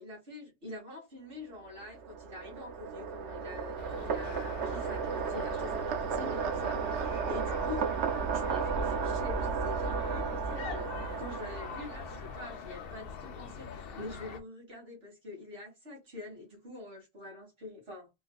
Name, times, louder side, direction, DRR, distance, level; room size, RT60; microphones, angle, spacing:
voice 1, 0.0-7.9 8.3-18.1, left 3 dB, 60° right, 2.1 m, -45 dB
sound 1, 1.7-12.4, right 6 dB, 75° right, 0.9 m, -34 dB
sound 2, 3.8-14.4, left 6 dB, 60° left, 0.7 m, -44 dB
3.8 x 2.5 x 2.3 m
omnidirectional pair, 1.2 m